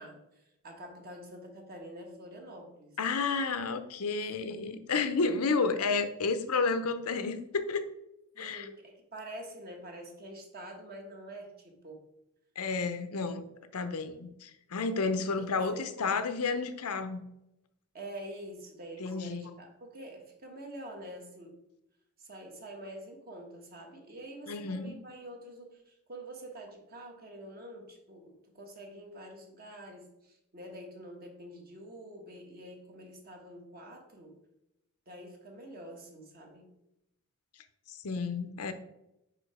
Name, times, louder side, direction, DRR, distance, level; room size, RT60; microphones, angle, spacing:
voice 1, 0.0-3.0 5.8-6.0 8.3-12.0 15.4-15.9 17.9-21.5 22.2-34.4 35.1-36.7, right 1 dB, 45° right, 2 dB, 1.4 m, -46 dB
voice 2, 3.0-7.9 8.4-8.7 12.6-13.4 13.7-17.2 19.0-19.4 24.5-24.9 38.0-38.7, left 4 dB, 85° left, 10 dB, 0.7 m, -31 dB
5.0 x 5.0 x 4.9 m, 0.87 s
head